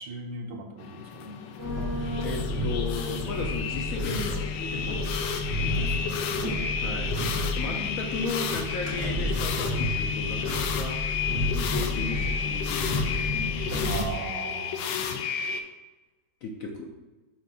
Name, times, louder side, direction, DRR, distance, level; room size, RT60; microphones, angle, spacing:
voice 1, 0.0-1.4 5.6-6.5 7.6-7.9 13.8-14.9, right 3 dB, 75° right, 2 dB, 1.5 m, -38 dB
sound 1, 0.8-15.6, left 7 dB, 90° left, 1.3 m, -32 dB
sound 2, 1.6-14.0, left 1 dB, 90° right, 2.5 m, -31 dB
voice 2, 2.2-5.4 6.8-7.1 7.5-11.0 11.5-13.3 16.4-16.9, left 3 dB, 65° left, 1 dB, 0.9 m, -35 dB
7.2 x 2.5 x 5.4 m, 1.2 s
omnidirectional pair, 1.9 m